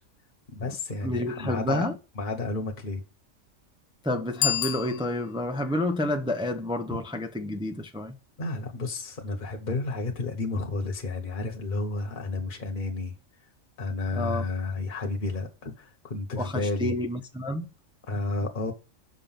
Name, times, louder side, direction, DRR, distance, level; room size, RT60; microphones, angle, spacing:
voice 1, 0.5-1.9 2.1-3.0 8.4-13.1 13.8-16.9 18.1-18.7, left 3 dB, 40° left, 1.3 m, -31 dB
voice 2, 1.0-2.0 4.0-8.2 14.1-14.4 16.4-17.7, left 1 dB, 5° right, 0.4 m, -29 dB
Bicycle bell, 4.3-5.6, left 11 dB, 75° left, 0.9 m, -30 dB
6.7 x 5.3 x 5.8 m
omnidirectional pair, 1.4 m